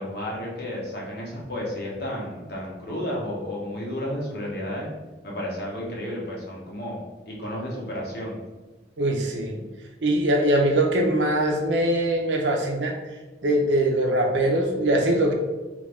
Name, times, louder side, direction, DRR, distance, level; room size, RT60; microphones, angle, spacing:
voice 1, 0.0-4.9 5.2-8.4, left 1 dB, 55° left, -3 dB, 0.9 m, -32 dB
voice 2, 9.0-9.6 10.0-13.0 13.4-15.3, right 1 dB, 85° right, 3 dB, 0.5 m, -22 dB
3.1 x 2.5 x 3.4 m, 1.2 s
head